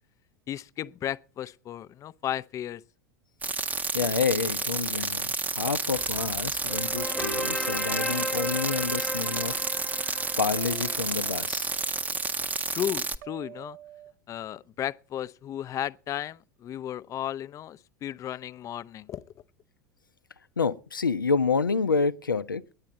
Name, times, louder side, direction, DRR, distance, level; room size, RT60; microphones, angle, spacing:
voice 1, 0.5-2.8 12.7-13.8 14.3-19.2, left 11 dB, 30° left, 0.5 m, -34 dB
sound 1, 3.4-13.2, right 4 dB, 15° right, 0.6 m, -30 dB
voice 2, 3.9-9.6 10.4-11.7 20.6-22.6, left 5 dB, 80° left, 0.6 m, -28 dB
sound 2, 6.0-11.9, left 1 dB, 5° left, 1.0 m, -36 dB
sound 3, 6.4-9.6 10.6-11.8 13.2-14.1, right 13 dB, 55° right, 0.6 m, -49 dB
9.7 x 9.3 x 7.7 m
figure-of-eight pair, 80°, 11 cm